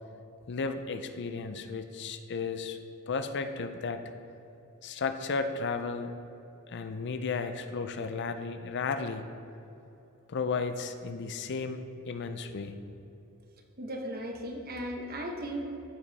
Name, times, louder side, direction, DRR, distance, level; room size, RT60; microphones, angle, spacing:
voice 1, 0.5-2.8 3.1-4.0 4.8-6.1 6.7-9.3 10.3-12.7, left 4 dB, 55° left, 9 dB, 0.5 m, -34 dB
voice 2, 13.8-15.6, equal, 45° right, 2 dB, 1.1 m, -36 dB
13.5 x 5.4 x 4.1 m, 2.8 s
head